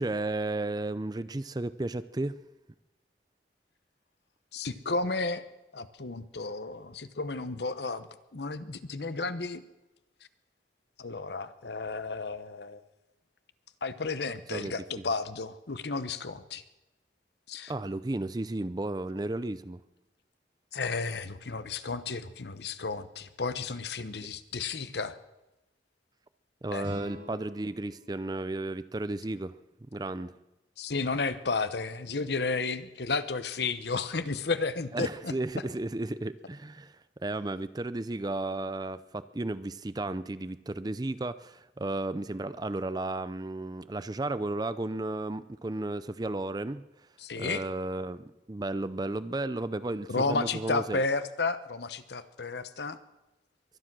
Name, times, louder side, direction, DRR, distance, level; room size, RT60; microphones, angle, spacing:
voice 1, 0.0-2.4 14.5-15.0 17.7-19.8 24.2-24.3 26.6-29.5 29.9-30.3 34.9-46.8 47.4-51.0, right 2 dB, 20° right, 14 dB, 0.5 m, -33 dB
voice 2, 4.5-5.4 5.7-9.6 11.0-12.8 13.8-16.6 17.5-17.7 20.7-25.1 26.7-26.8 30.8-35.3 47.2-47.6 50.1-53.0, left 3 dB, 65° left, 12 dB, 0.9 m, -32 dB
sound 1, 26.8-29.8, left 1 dB, 60° right, 7.4 m, -47 dB
23.0 x 10.0 x 6.1 m, 0.97 s
head